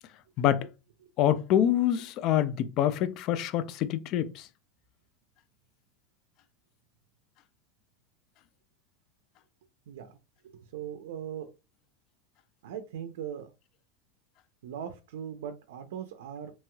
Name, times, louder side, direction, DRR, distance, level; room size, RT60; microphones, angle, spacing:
voice 1, 1.2-4.3, left 10 dB, 50° left, 0.3 m, -26 dB
voice 2, 9.9-10.2 10.4-11.5 12.6-13.5 14.6-16.5, right 9 dB, 85° right, 0.4 m, -40 dB
3.0 x 2.9 x 2.2 m
supercardioid pair, 130°, 0 cm